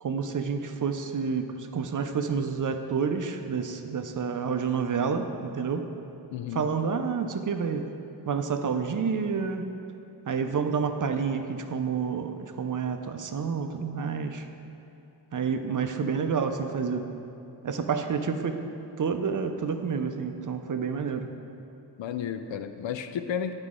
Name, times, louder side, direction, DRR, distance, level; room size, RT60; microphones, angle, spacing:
voice 1, 0.0-5.9 6.5-7.9 8.3-9.7 10.3-14.5 15.3-17.1 17.6-18.6 19.0-21.3, right 6 dB, 45° right, 7 dB, 0.6 m, -29 dB
voice 2, 6.3-6.6 22.0-23.5, left 8 dB, 70° left, 9 dB, 0.6 m, -32 dB
9.5 x 4.9 x 3.7 m, 2.8 s
cardioid pair, 60°, 47 cm